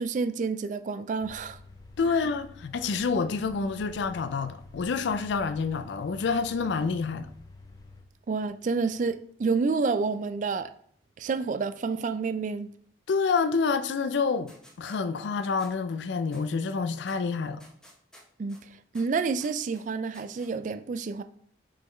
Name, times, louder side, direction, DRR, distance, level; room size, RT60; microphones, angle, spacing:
voice 1, 0.0-1.6 8.3-10.7 11.2-12.7 18.4-18.6 18.9-21.2, right 4 dB, 40° right, 0.3 m, -29 dB
sound 1, 1.2-8.0, left 2 dB, 20° left, 0.6 m, -49 dB
voice 2, 2.0-7.3 13.1-17.6, left 5 dB, 70° left, 0.4 m, -28 dB
sound 2, 14.5-15.0 15.6-15.7 16.3-16.4 17.1-17.2 17.6-18.6 18.9-19.8 20.1-20.5, equal, 5° left, 0.9 m, -53 dB
5.5 x 5.3 x 3.2 m
head